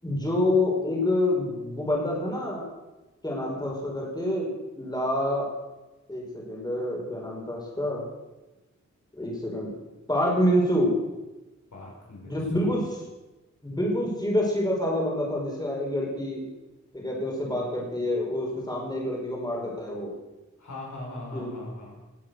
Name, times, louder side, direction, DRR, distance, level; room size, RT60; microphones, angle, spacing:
voice 1, 0.0-2.7 3.2-5.5 6.1-8.0 9.1-9.7 10.1-10.9 12.3-12.8 13.6-16.4 16.9-20.1 21.3-21.5, left 1 dB, 15° left, -3 dB, 5.0 m, -27 dB
voice 2, 11.7-12.7 20.6-21.9, left 1 dB, 70° left, -3 dB, 5.4 m, -40 dB
19.0 x 8.6 x 6.5 m, 1.1 s
wide cardioid pair, 110°, 30 cm